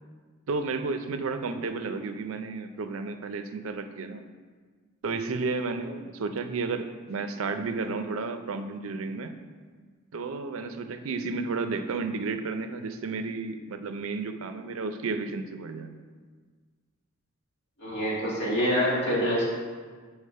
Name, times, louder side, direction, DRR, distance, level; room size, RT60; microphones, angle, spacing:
voice 1, 0.5-4.2 5.0-9.3 10.1-15.9, right 4 dB, 80° right, 8 dB, 0.5 m, -32 dB
voice 2, 17.8-19.4, equal, 55° left, -6 dB, 2.0 m, -26 dB
4.9 x 4.6 x 5.5 m, 1.5 s
head